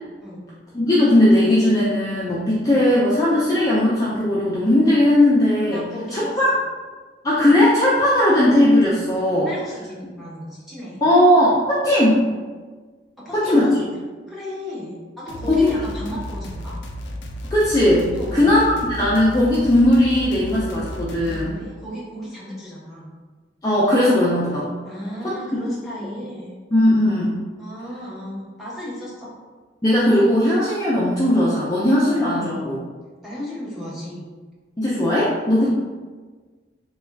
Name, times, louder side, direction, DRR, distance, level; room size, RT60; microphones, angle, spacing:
voice 1, 0.7-5.8 6.1-6.5 7.2-9.5 11.0-12.2 13.3-13.7 15.5-15.7 17.5-21.6 23.6-24.7 25.2-25.3 26.7-27.3 29.8-32.8 34.8-35.7, left 1 dB, 20° left, -8 dB, 0.5 m, -18 dB
voice 2, 5.7-6.3 9.4-11.0 13.2-13.9 14.3-16.7 18.1-18.7 21.2-23.1 24.8-26.5 27.6-29.3 32.3-32.6 33.2-34.2, left 1 dB, ahead, -8 dB, 0.9 m, -34 dB
sound 1, 15.3-21.5, equal, 80° left, 0.4 m, -33 dB
3.4 x 2.2 x 3.3 m, 1.4 s
head